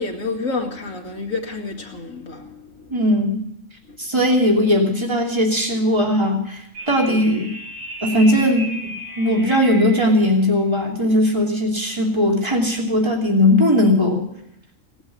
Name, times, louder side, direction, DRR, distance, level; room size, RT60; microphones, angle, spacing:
voice 1, 0.0-2.9, left 3 dB, 75° left, 2 dB, 2.6 m, -29 dB
voice 2, 2.9-3.4 4.0-6.6 6.9-7.5 8.0-8.7 9.2-14.2, left 1 dB, 20° right, 0 dB, 3.0 m, -18 dB
sound 1, 6.7-10.2, right 1 dB, 65° right, 3.1 m, -33 dB
18.0 x 8.1 x 9.4 m, 0.78 s
omnidirectional pair, 1.4 m